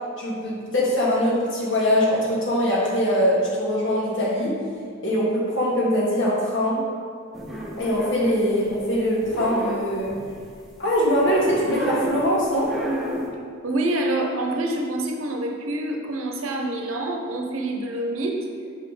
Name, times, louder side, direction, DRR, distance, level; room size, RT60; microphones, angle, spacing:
voice 1, 0.2-4.6 5.0-6.8 7.8-10.1 10.8-12.7, equal, 65° left, -5 dB, 1.6 m, -22 dB
sound 1, 7.3-8.9 9.2-10.4 11.2-12.3 12.6-13.3, equal, ahead, 1.0 m, -30 dB
voice 2, 13.6-18.4, right 1 dB, 85° right, 2 dB, 0.8 m, -26 dB
5.6 x 3.9 x 4.8 m, 2.1 s
head